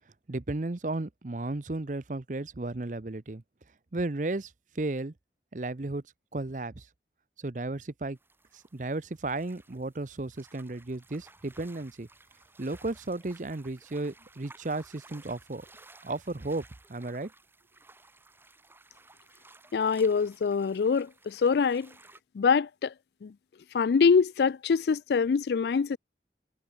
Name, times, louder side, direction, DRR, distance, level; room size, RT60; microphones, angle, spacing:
voice 1, 0.3-3.4 3.9-5.1 5.5-6.0 6.3-6.9 7.4-8.2 8.7-12.1 12.6-15.7 16.0-16.6 16.9-17.3, right 2 dB, 45° right, 0.8 m, -34 dB
sound 1, 8.2-22.2, right 2 dB, 15° right, 5.7 m, -57 dB
voice 2, 19.7-21.9 22.3-22.9 23.2-23.3 23.7-26.0, left 5 dB, 70° left, 0.4 m, -24 dB
head